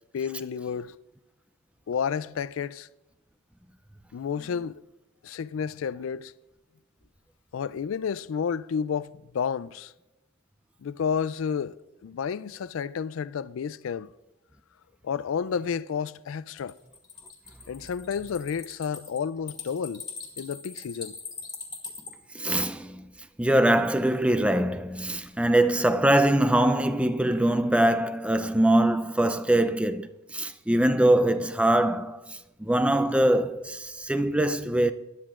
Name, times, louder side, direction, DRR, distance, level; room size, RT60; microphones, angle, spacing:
voice 1, 0.1-0.9 1.9-2.9 4.1-4.8 5.2-6.3 7.5-9.9 10.8-11.8 12.0-14.1 15.0-16.7 17.7-20.0 20.4-21.1, left 7 dB, 70° left, 0.4 m, -31 dB
sound 1, 16.6-22.1, left 5 dB, 20° left, 2.0 m, -41 dB
voice 2, 22.3-23.0 23.4-34.9, right 1 dB, 5° right, 0.4 m, -23 dB
20.5 x 12.0 x 2.5 m
head